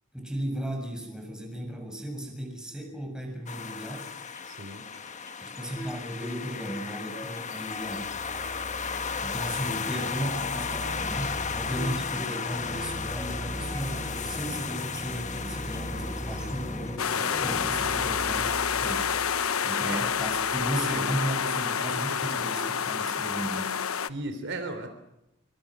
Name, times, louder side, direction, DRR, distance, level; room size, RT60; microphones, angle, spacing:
voice 1, 0.1-4.1 5.4-8.1 9.2-19.1 19.6-23.7, right 1 dB, 5° right, 3 dB, 7.1 m, -35 dB
sound 1, 3.5-17.0, left 6 dB, 35° left, 1.3 m, -35 dB
sound 2, 4.1-4.5 4.9-21.5, equal, 15° left, 3.6 m, -39 dB
voice 2, 4.4-4.9 16.4-16.6 17.2-17.3 19.9-20.0 21.5-21.9 24.1-24.9, right 2 dB, 60° right, 7 dB, 3.6 m, -37 dB
sound 3, 17.0-24.1, left 7 dB, 85° left, 1.0 m, -28 dB
27.0 x 25.5 x 6.3 m, 0.90 s
head